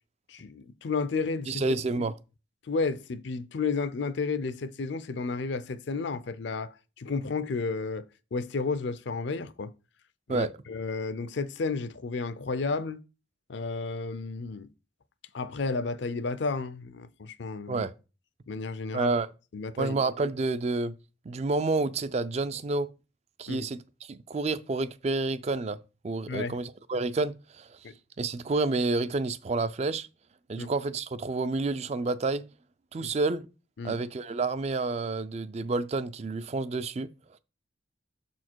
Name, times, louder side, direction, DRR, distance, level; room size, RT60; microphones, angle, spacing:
voice 1, 0.3-1.6 2.0-2.1 2.7-8.0 8.3-9.7 10.3-13.0 13.5-14.7 15.3-17.8 18.5-19.1 19.5-19.9 23.5-23.7 26.3-26.5 27.8-27.9 30.6-30.7 33.0-33.1 33.8-34.0, left 4 dB, 60° left, 0.5 m, -32 dB
voice 2, 1.5-2.1 10.3-10.5 17.7-17.9 18.9-19.3 19.8-20.9 21.3-22.9 23.4-25.8 26.0-27.8 28.2-30.1 30.5-32.4 32.9-33.5 33.8-37.1, right 3 dB, 30° right, 0.3 m, -29 dB
6.7 x 4.3 x 4.5 m
head